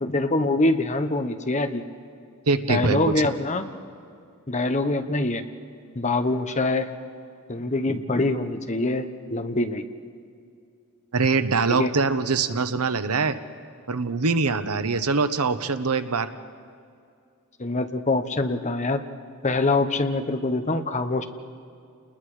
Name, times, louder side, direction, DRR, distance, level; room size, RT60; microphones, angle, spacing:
voice 1, 0.0-1.8 2.7-3.6 4.5-5.4 5.9-6.9 7.5-9.9 11.7-11.9 17.6-19.1 19.4-21.2, left 2 dB, 30° left, 8 dB, 1.1 m, -24 dB
voice 2, 2.5-3.3 11.1-13.4 13.9-16.3, right 4 dB, 90° right, 10 dB, 1.1 m, -23 dB
29.5 x 20.5 x 5.0 m, 2.4 s
head